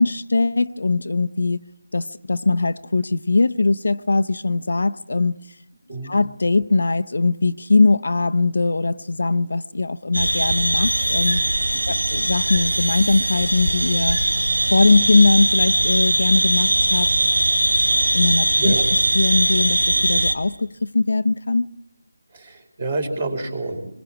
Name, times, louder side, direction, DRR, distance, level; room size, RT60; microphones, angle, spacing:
voice 1, 0.0-1.6 1.9-5.4 6.0-11.4 11.9-14.2 14.7-17.1 18.1-18.7 19.1-21.7, left 3 dB, 55° left, 0.8 m, -20 dB
sound 1, 10.1-20.3, right 1 dB, 75° right, 3.6 m, -20 dB
voice 2, 18.5-18.8 22.3-24.0, right 2 dB, 30° right, 4.6 m, -28 dB
26.0 x 22.0 x 6.0 m
figure-of-eight pair, 170°, 0 cm